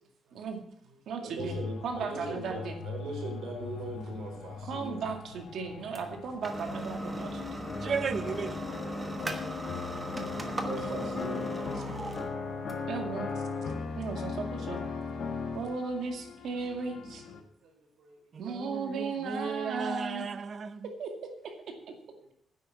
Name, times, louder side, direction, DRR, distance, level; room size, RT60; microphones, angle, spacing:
voice 1, 0.3-0.6 1.1-1.6 1.8-2.8 4.7-7.7 11.8-11.9 12.9-13.4 14.0-14.8 15.5-17.2 18.4-20.3 20.8-21.9, right 4 dB, 65° right, 2.2 m, -36 dB
voice 2, 1.2-5.0 10.5-12.3 17.3-18.2 22.2-22.3, right 2 dB, 85° right, 3.9 m, -41 dB
sound 1, 1.4-17.4, left 5 dB, 75° left, 1.1 m, -45 dB
sound 2, 3.8-14.9, right 1 dB, 15° right, 1.2 m, -39 dB
sound 3, 7.7-15.6, left 4 dB, 50° left, 2.0 m, -37 dB
voice 3, 7.8-8.6 18.3-20.9, right 6 dB, 40° right, 0.7 m, -35 dB
10.0 x 8.2 x 7.5 m
cardioid pair, 170°, 0 cm